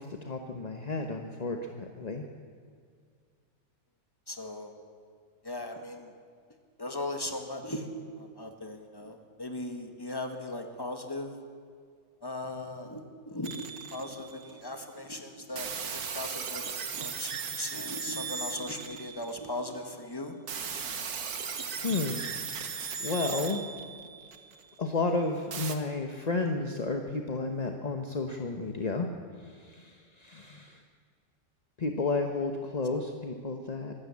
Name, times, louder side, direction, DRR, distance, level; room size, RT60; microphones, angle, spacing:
voice 1, 0.0-2.3 21.8-22.2 22.7-23.7 24.8-29.1 29.4-30.8 31.8-33.9, left 3 dB, 30° left, 4 dB, 0.8 m, -32 dB
voice 2, 4.3-4.7 5.4-6.1 6.8-11.4 12.2-20.4, left 1 dB, 15° left, 5 dB, 1.7 m, -38 dB
sound 1, 13.4-14.6 15.6-19.6 20.5-24.6 25.5-25.7, right 6 dB, 60° right, 1.8 m, -37 dB
25.0 x 12.5 x 8.5 m, 2.1 s
omnidirectional pair, 1.9 m